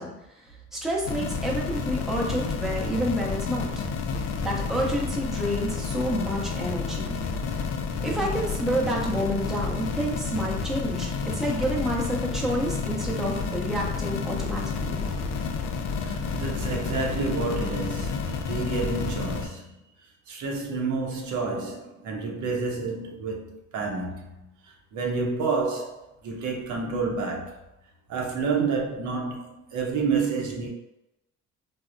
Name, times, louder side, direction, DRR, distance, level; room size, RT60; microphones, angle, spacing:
voice 1, 0.0-3.7 4.4-7.1 8.0-15.0, equal, ahead, 0.6 m, -29 dB
sound 1, 1.1-19.5, left 5 dB, 60° left, 0.4 m, -30 dB
voice 2, 16.1-19.7 20.3-24.5 24.9-27.6 28.1-30.7, right 4 dB, 75° right, 0.7 m, -29 dB
3.3 x 2.0 x 2.5 m
cardioid pair, 90°, 30 cm